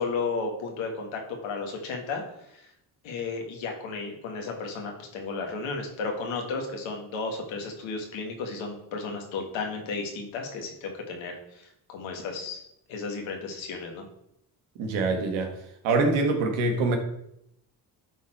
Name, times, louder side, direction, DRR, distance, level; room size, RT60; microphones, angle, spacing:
voice 1, 0.0-2.2 2.5-2.7 3.0-12.6 12.9-14.0, left 4 dB, 75° left, 2 dB, 2.0 m, -33 dB
voice 2, 14.8-15.5 15.8-17.0, right 3 dB, 75° right, 5 dB, 1.7 m, -24 dB
11.0 x 4.3 x 4.5 m, 0.76 s
hypercardioid pair, 60°, 47 cm